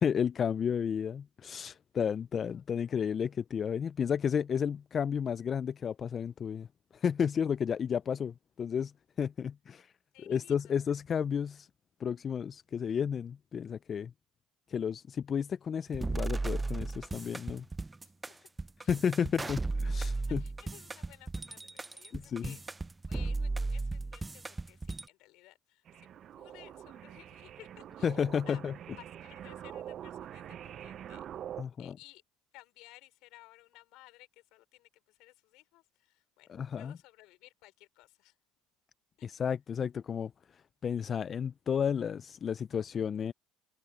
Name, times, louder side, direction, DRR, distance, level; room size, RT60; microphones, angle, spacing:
voice 1, 0.0-6.7 6.9-8.9 9.2-9.9 10.3-11.7 12.0-14.1 14.7-17.7 18.9-20.4 22.1-22.6 28.0-28.7 31.6-31.9 36.5-36.9 39.2-43.3, left 7 dB, 40° left, 0.5 m, -32 dB
voice 2, 2.5-3.1 10.1-10.7 18.0-18.1 18.4-18.5 18.8-18.9 19.4-19.5 20.0-22.6 23.1-28.6 29.0-31.3 31.8-32.2 32.5-38.4 39.2-39.4, left 19 dB, 70° left, 4.6 m, -57 dB
sound 1, 15.9-25.1, right 3 dB, 15° right, 0.5 m, -35 dB
sound 2, 25.9-31.6, right 10 dB, 50° right, 0.8 m, -45 dB
supercardioid pair, 80°, 0 cm